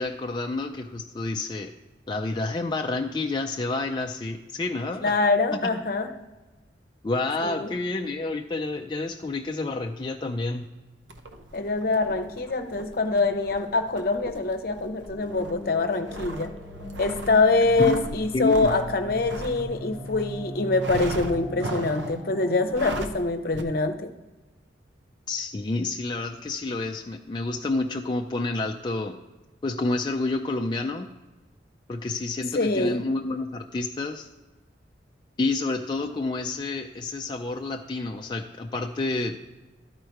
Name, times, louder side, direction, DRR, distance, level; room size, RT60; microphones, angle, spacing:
voice 1, 0.0-1.7 2.1-5.1 5.7-5.8 7.0-10.7 17.8-18.7 25.3-29.2 29.6-31.1 31.9-34.3 35.4-39.4, left 2 dB, 25° left, 3 dB, 0.3 m, -29 dB
voice 2, 5.0-6.1 7.4-7.7 11.5-16.5 17.0-24.1 32.5-33.1, left 3 dB, 55° left, 6 dB, 0.7 m, -24 dB
sound 1, 11.1-20.3 20.8-22.2 22.7-23.2 23.5-23.6, right 1 dB, 85° right, 0.7 m, -38 dB
sound 2, 15.1-23.1, equal, 25° right, 2.1 m, -39 dB
12.0 x 4.4 x 4.6 m, 1.2 s
head